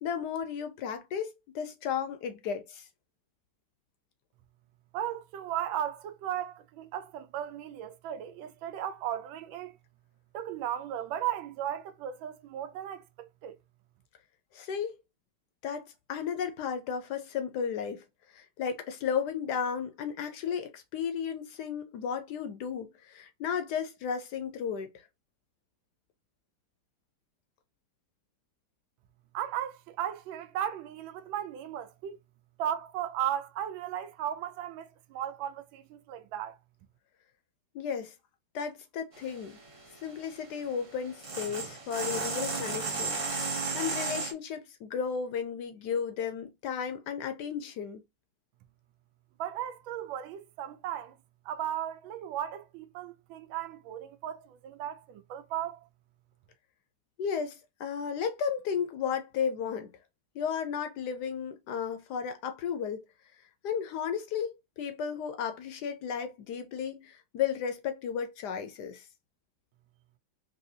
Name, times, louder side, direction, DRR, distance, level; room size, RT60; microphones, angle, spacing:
voice 1, 0.0-2.9 14.5-15.0 15.6-18.0 18.3-25.1 37.7-38.1 38.5-39.6 40.0-48.0 57.2-59.9 60.3-63.0 63.6-69.1, left 7 dB, 70° left, 1.1 m, -34 dB
voice 2, 4.9-9.8 10.3-13.5 29.3-32.2 32.6-36.6 49.4-51.2 51.4-55.9, right 11 dB, 80° right, 1.4 m, -36 dB
sound 1, 39.1-44.3, right 4 dB, 45° right, 0.4 m, -35 dB
4.1 x 2.6 x 2.7 m
omnidirectional pair, 2.1 m